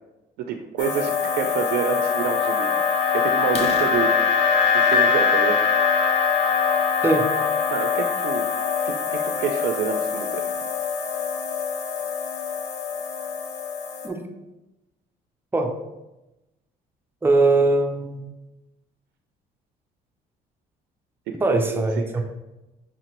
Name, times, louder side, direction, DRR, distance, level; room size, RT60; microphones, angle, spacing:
voice 1, 0.4-2.7 3.1-4.1 4.7-5.6 7.7-8.5 8.8-10.5 21.5-22.2, right 8 dB, 85° right, 4 dB, 0.4 m, -28 dB
sound 1, 0.8-14.1, left 6 dB, 80° left, 0.7 m, -23 dB
sound 2, 3.4-7.2 7.7-7.9 8.4-8.5 8.9-9.1 9.4-9.5 9.9-10.0 10.3-10.8, left 1 dB, 40° left, 0.8 m, -40 dB
voice 2, 17.2-18.2 21.4-22.2, right 2 dB, 15° right, 3 dB, 0.5 m, -21 dB
5.9 x 2.9 x 2.9 m, 1.0 s
cardioid pair, 110°, 17 cm